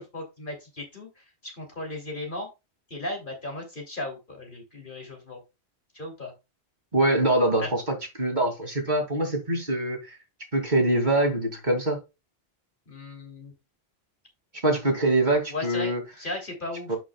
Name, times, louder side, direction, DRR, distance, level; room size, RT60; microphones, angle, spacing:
voice 1, 0.0-2.5 2.9-5.4 5.9-6.3 7.6-7.7 12.9-13.5 15.5-17.0, left 2 dB, 50° left, 3.3 m, -36 dB
voice 2, 6.9-10.2 10.5-12.0 14.6-16.0 16.9-17.0, right 2 dB, 45° right, 2.7 m, -24 dB
11.0 x 6.1 x 2.3 m
omnidirectional pair, 1.1 m